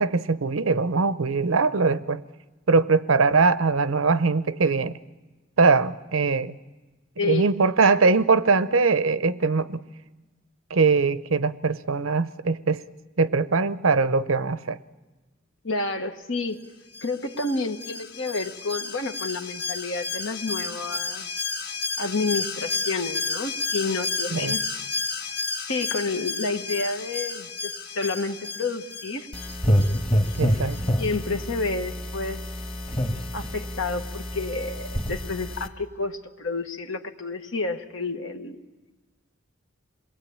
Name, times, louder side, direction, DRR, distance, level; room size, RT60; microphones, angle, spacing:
voice 1, 0.0-2.2 2.7-4.9 5.6-6.6 7.2-9.8 10.7-12.8 13.2-14.8 24.3-24.6 30.4-30.8, right 4 dB, 85° right, 14 dB, 0.7 m, -21 dB
voice 2, 7.2-7.5 15.6-16.6 17.0-21.5 22.0-24.6 25.7-29.3 31.0-32.4 33.3-38.6, left 3 dB, 75° left, 6 dB, 1.5 m, -30 dB
Alarm, 16.9-30.4 30.7-30.8, left 4 dB, 50° left, 1.4 m, -32 dB
sound 1, 29.3-35.7, equal, 25° left, 1.5 m, -27 dB
27.0 x 20.5 x 8.7 m, 1.2 s
head